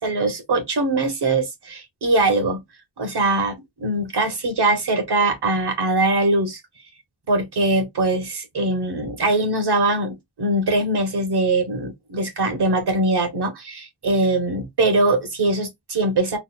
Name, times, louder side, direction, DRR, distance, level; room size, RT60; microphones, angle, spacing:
voice 1, 0.0-2.6 3.0-6.6 7.3-16.4, right 2 dB, 60° right, 1.1 m, -22 dB
3.9 x 2.0 x 2.3 m
cardioid pair, 60°, 46 cm